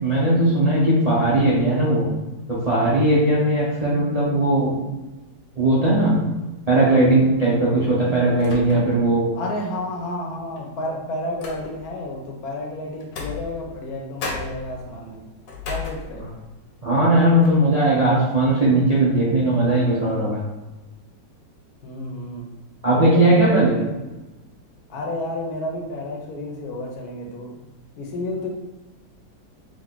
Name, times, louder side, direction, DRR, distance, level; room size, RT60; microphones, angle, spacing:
voice 1, 0.0-2.0 2.5-4.8 5.6-6.2 6.7-9.2 16.8-20.4 22.8-23.7, right 1 dB, 40° right, -7 dB, 0.5 m, -18 dB
sound 1, 7.0-7.4 8.4-9.1 9.5-9.6 10.5-12.0 13.0-13.9 14.2-16.5 17.0-17.1 17.4-17.8, left 4 dB, 80° left, 1.5 m, -35 dB
voice 2, 9.3-15.3 15.6-16.3 21.8-22.5 22.9-23.9 24.9-27.6 28.0-28.5, left 1 dB, 65° left, -1 dB, 1.2 m, -31 dB
3.9 x 2.7 x 3.8 m, 1.1 s
omnidirectional pair, 1.9 m